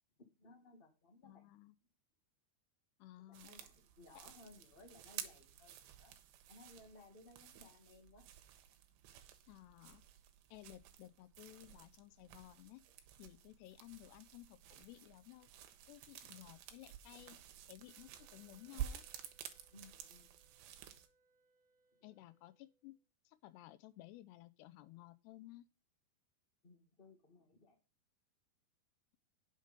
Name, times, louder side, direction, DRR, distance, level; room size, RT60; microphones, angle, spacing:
voice 1, 0.4-1.4 3.2-6.1 6.5-8.2 19.7-20.4 26.6-27.8, left 2 dB, 45° left, 0.6 m, -61 dB
voice 2, 1.2-1.7 3.0-3.6 9.5-10.0 10.5-12.8 13.2-15.5 15.9-19.1 22.0-23.0 23.3-25.7, left 16 dB, 85° left, 2.8 m, -56 dB
sound 1, 3.3-21.1, right 10 dB, 90° right, 3.1 m, -52 dB
Wind instrument woodwind instrument, 17.9-23.1, right 2 dB, 30° right, 3.1 m, -76 dB
9.4 x 6.6 x 5.3 m
omnidirectional pair, 4.8 m